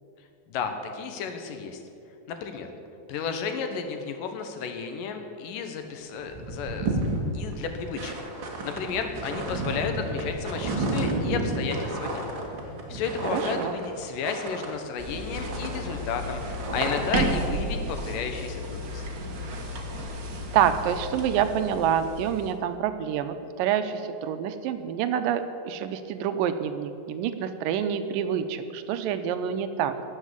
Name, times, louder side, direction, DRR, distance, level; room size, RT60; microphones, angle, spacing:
voice 1, 0.5-1.8 2.3-2.7 3.1-7.0 7.3-8.2 8.6-12.3 12.9-19.1, left 6 dB, 75° left, 6 dB, 2.7 m, -32 dB
sound 1, 5.8-5.9 6.2-15.1 15.3-17.3, right 2 dB, 45° right, 1.8 m, -32 dB
voice 2, 13.3-13.7 20.5-30.0, right 9 dB, 80° right, 9 dB, 2.3 m, -27 dB
sound 2, 15.0-22.5, right 1 dB, 65° right, 0.9 m, -33 dB
13.0 x 7.4 x 9.6 m, 2.6 s
omnidirectional pair, 4.0 m